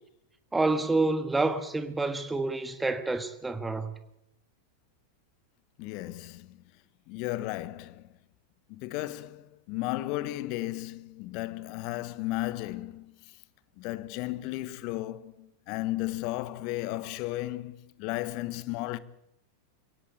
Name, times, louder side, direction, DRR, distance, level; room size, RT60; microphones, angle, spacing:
voice 1, 0.5-3.9, right 3 dB, 10° right, 1.5 m, -28 dB
voice 2, 5.8-6.6 7.1-8.0 8.7-13.1 13.8-19.0, left 17 dB, 45° left, 1.2 m, -34 dB
23.0 x 17.5 x 8.4 m
figure-of-eight pair, 90°, 0 cm